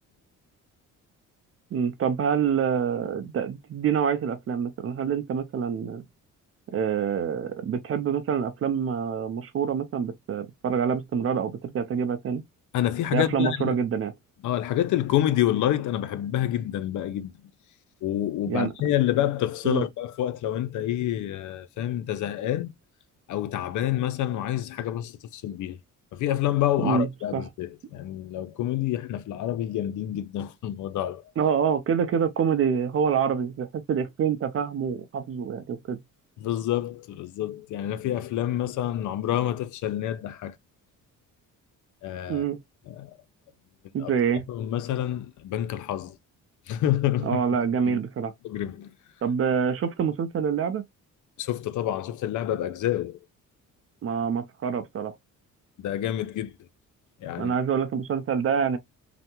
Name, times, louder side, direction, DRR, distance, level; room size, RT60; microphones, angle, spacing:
voice 1, 1.7-6.0 6.7-12.4 13.1-14.1 18.5-18.7 19.6-19.9 26.8-27.4 31.4-36.0 42.3-42.6 43.9-44.4 47.2-48.3 49.2-50.8 54.0-55.1 57.4-58.8, right 7 dB, 45° right, 0.5 m, -26 dB
voice 2, 12.7-13.8 14.4-17.3 18.0-22.7 23.3-25.8 26.1-31.2 36.4-40.5 42.0-42.4 42.9-43.1 44.0-44.1 44.5-46.2 46.7-47.4 47.8-48.0 48.4-48.9 51.4-53.2 55.8-56.6 57.2-57.5, left 12 dB, 65° left, 0.5 m, -28 dB
3.3 x 2.1 x 2.9 m
cardioid pair, 95°, 32 cm